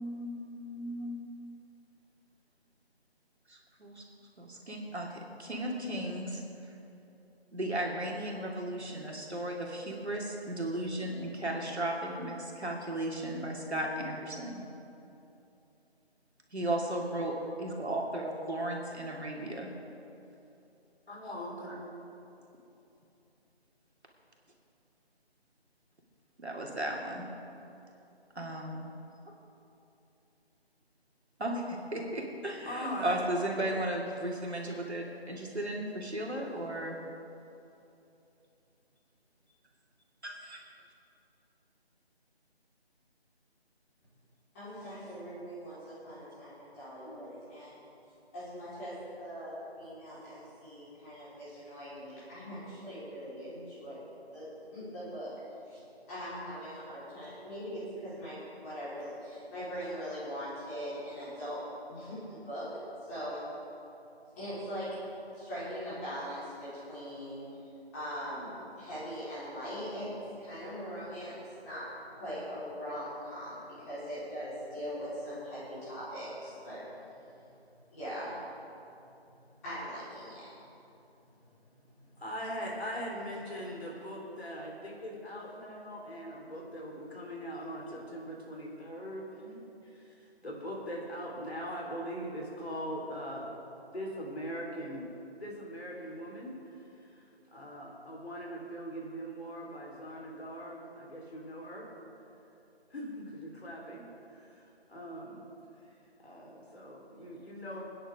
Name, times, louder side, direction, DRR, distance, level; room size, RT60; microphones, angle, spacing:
voice 1, 0.0-1.4 3.5-4.0 4.4-6.4 7.5-14.6 16.5-19.7 26.4-27.3 28.3-28.9 31.4-37.0 40.2-40.7, right 1 dB, 85° right, -1 dB, 2.7 m, -35 dB
voice 2, 21.1-21.9 32.6-33.2 47.1-47.2 82.2-90.1 90.4-93.5 93.9-95.1 95.4-96.6 97.5-101.9 102.9-104.1 104.3-104.4 104.9-105.4 106.2-107.8, equal, 70° left, -2 dB, 4.0 m, -41 dB
voice 3, 44.5-47.8 48.3-54.5 54.7-55.3 55.6-55.8 56.1-61.6 61.9-62.7 63.0-63.4 64.4-64.9 65.4-67.4 67.9-70.1 70.4-71.8 72.2-76.8 77.3-77.4 77.9-78.3 79.6-80.5 82.0-82.1, equal, 15° left, -12 dB, 4.1 m, -41 dB
26.0 x 10.0 x 3.7 m, 2.8 s
figure-of-eight pair, 165°, 32 cm